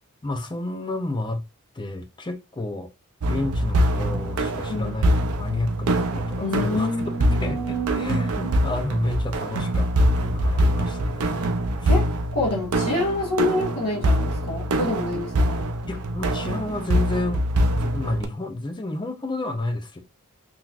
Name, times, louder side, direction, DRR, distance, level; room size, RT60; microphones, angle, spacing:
voice 1, 0.2-1.4 1.7-2.9 3.3-6.9 7.3-11.5 11.8-11.9 15.9-17.4 17.7-20.0, left 2 dB, 20° left, 0.5 m, -30 dB
sound 1, 3.2-18.3, right 1 dB, 80° right, 0.5 m, -24 dB
voice 2, 6.4-8.6 11.9-15.7, left 2 dB, 70° left, 1.3 m, -27 dB
3.8 x 3.0 x 2.4 m
head